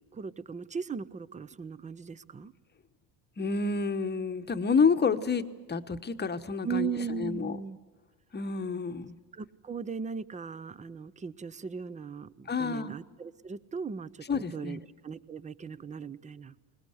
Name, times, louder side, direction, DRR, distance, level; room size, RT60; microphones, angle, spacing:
voice 1, 0.1-2.5 6.6-7.8 9.3-16.5, right 6 dB, 15° right, 19 dB, 0.6 m, -38 dB
voice 2, 3.4-6.9 7.2-7.6 8.3-9.2 12.5-12.9 14.3-14.8, left 5 dB, 20° left, 10 dB, 1.1 m, -29 dB
21.5 x 19.5 x 8.0 m, 1.4 s
supercardioid pair, 100°, 48 cm